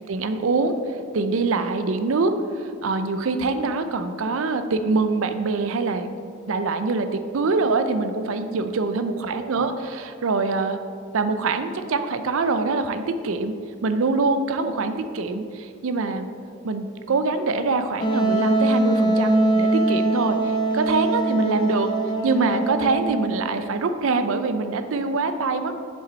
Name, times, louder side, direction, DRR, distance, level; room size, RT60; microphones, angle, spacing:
voice 1, 0.1-0.8 1.1-6.1 6.5-10.8 11.1-13.5 13.8-16.3 16.6-21.9 22.2-25.8, right 3 dB, 60° right, 9 dB, 0.4 m, -24 dB
Wind instrument woodwind instrument, 18.0-23.6, right 2 dB, 20° left, 0.4 m, -23 dB
7.4 x 5.3 x 4.0 m, 2.3 s
head